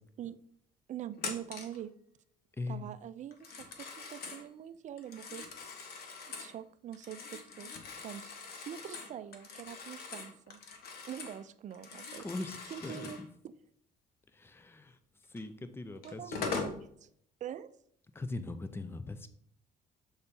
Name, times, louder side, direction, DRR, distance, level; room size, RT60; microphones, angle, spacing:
voice 1, 0.9-1.9 2.7-5.4 6.4-7.7 8.0-10.6 11.1-12.3 12.7-13.2 16.0-17.1 17.4-17.7, right 10 dB, 45° right, 14 dB, 0.4 m, -44 dB
Telephone, 1.2-1.8 3.3-4.4 5.0-6.5 6.9-11.4 11.7-13.3 15.4-15.5 16.0-16.8, left 5 dB, 65° left, 1.2 m, -42 dB
voice 2, 2.6-2.9 12.2-13.3 14.3-15.0 15.3-16.5 18.1-19.3, left 2 dB, 15° left, 10 dB, 0.6 m, -41 dB
7.0 x 4.0 x 3.7 m, 0.67 s
cardioid pair, 110°, 17 cm